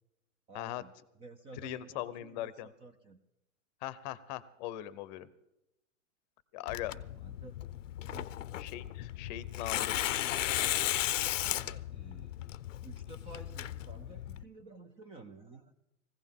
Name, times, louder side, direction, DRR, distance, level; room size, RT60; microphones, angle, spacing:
voice 1, 0.5-3.2 7.1-7.5 8.0-8.3 11.4-12.5 12.8-15.7, right 3 dB, 15° right, 7 dB, 0.5 m, -52 dB
voice 2, 1.6-2.7 3.8-5.3 6.5-6.9 8.6-10.3, left 13 dB, 35° left, 17 dB, 0.8 m, -40 dB
Tearing, 6.7-14.4, left 12 dB, 70° left, 0.7 m, -35 dB
20.5 x 16.0 x 3.7 m, 0.88 s
hypercardioid pair, 140°, 39 cm